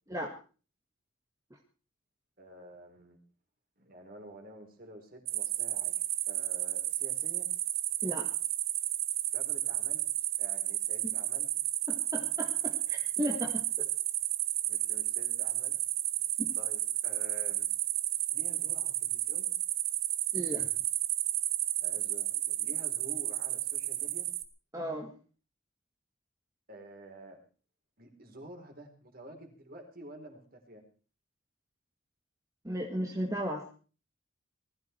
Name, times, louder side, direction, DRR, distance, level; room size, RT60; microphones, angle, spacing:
voice 1, 2.4-3.2 3.8-7.5 9.3-10.1 10.4-11.5 14.7-15.8 16.6-17.7 18.3-19.5 21.8-24.3 26.7-27.4 28.0-30.8, right 1 dB, 45° right, 3 dB, 4.4 m, -50 dB
sound 1, 5.2-24.4, right 14 dB, 70° right, 1.6 m, -32 dB
voice 2, 11.9-13.9 16.4-16.5 20.3-20.7 24.7-25.1 32.6-33.7, equal, 15° right, 1 dB, 1.9 m, -35 dB
20.0 x 15.0 x 4.6 m, 0.38 s
head